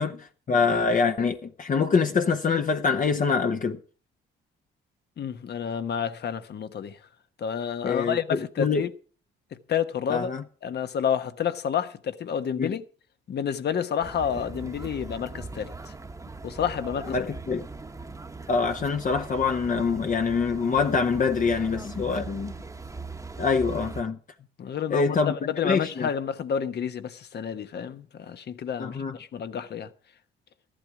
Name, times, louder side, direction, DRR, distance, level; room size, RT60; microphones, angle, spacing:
voice 1, 0.0-3.8 7.8-8.9 10.1-10.4 12.6-12.7 17.1-17.7 18.5-22.5 23.4-24.2 24.9-26.1 28.8-29.2, left 5 dB, 40° left, 0.9 m, -25 dB
voice 2, 5.2-7.0 7.4-8.9 9.5-10.3 10.6-12.8 13.3-15.9 16.4-17.3 24.6-29.9, left 8 dB, 55° left, 1.2 m, -30 dB
sound 1, 14.0-24.0, right 3 dB, 15° right, 1.1 m, -40 dB
14.0 x 11.5 x 4.9 m
cardioid pair, 90°, 20 cm